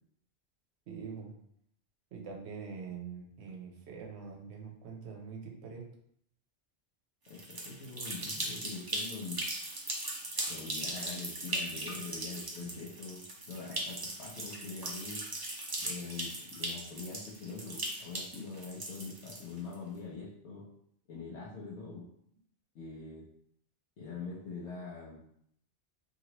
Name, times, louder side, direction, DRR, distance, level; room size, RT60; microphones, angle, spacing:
voice 1, 0.9-1.3 2.1-5.8 12.6-12.7, right 5 dB, 75° right, 0 dB, 1.0 m, -44 dB
voice 2, 7.3-9.4 10.5-15.2 15.8-20.6 21.1-22.0 22.7-23.3 24.0-25.2, left 4 dB, 85° left, -7 dB, 1.0 m, -43 dB
sound 1, 7.3-19.7, right 1 dB, 40° right, 0.3 m, -39 dB
2.9 x 2.8 x 2.9 m, 0.71 s
omnidirectional pair, 1.1 m